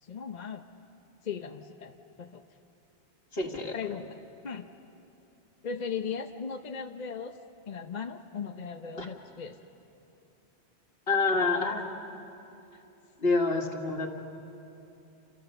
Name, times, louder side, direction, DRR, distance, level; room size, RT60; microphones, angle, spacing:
voice 1, 0.0-0.6 1.2-2.4 3.7-4.2 4.4-4.7 5.6-7.4 7.7-9.6, left 6 dB, 45° left, 6 dB, 0.8 m, -37 dB
voice 2, 3.3-3.7 9.0-9.1 11.1-11.9 13.2-14.1, left 3 dB, 65° left, 2 dB, 2.3 m, -27 dB
29.0 x 28.5 x 6.9 m, 2.9 s
omnidirectional pair, 1.1 m